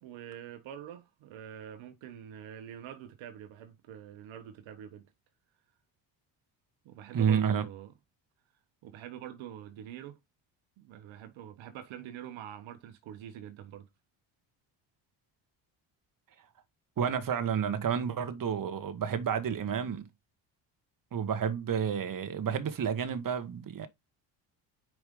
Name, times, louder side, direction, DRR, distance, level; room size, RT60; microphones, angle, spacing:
voice 1, 0.0-5.1 6.8-7.9 8.8-10.2 10.8-13.9, right 10 dB, 70° right, 1.2 m, -45 dB
voice 2, 7.1-7.6 17.0-20.1 21.1-23.9, right 7 dB, 40° right, 1.5 m, -30 dB
6.0 x 5.1 x 3.7 m
supercardioid pair, 70°, 49 cm